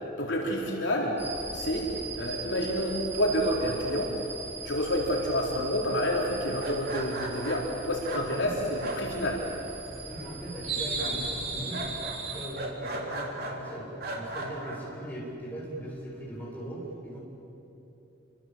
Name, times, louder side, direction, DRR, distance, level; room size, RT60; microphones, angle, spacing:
voice 1, 0.2-1.2 1.5-1.9 2.2-4.1 4.6-9.4, equal, 65° left, -2 dB, 4.3 m, -29 dB
sound 1, 1.2-12.5, right 4 dB, 35° right, 5.8 m, -38 dB
sound 2, 6.5-9.8 10.0-10.6 11.0-13.6 14.0-14.8, right 2 dB, 50° right, 3.7 m, -37 dB
voice 2, 8.0-8.7 10.0-11.9 12.2-17.2, right 1 dB, 10° left, -5 dB, 7.6 m, -39 dB
28.5 x 26.0 x 7.8 m, 2.9 s
head